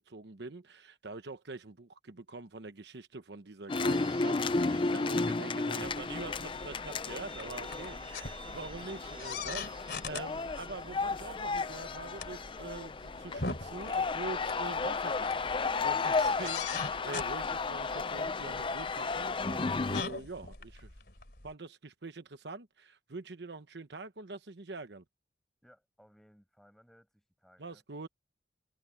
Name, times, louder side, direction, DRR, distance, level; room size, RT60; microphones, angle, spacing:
voice 1, 0.0-20.9 21.4-25.0 27.6-28.1, right 3 dB, 75° right, 1.1 m, -45 dB
sound 1, 3.7-20.0, left 3 dB, 30° left, 0.5 m, -33 dB
sound 2, 3.7-16.3, right 3 dB, 30° right, 4.7 m, -56 dB
sound 3, 5.8-21.5, left 4 dB, 65° left, 3.5 m, -43 dB
voice 2, 25.6-27.8, equal, ahead, 7.9 m, -62 dB
head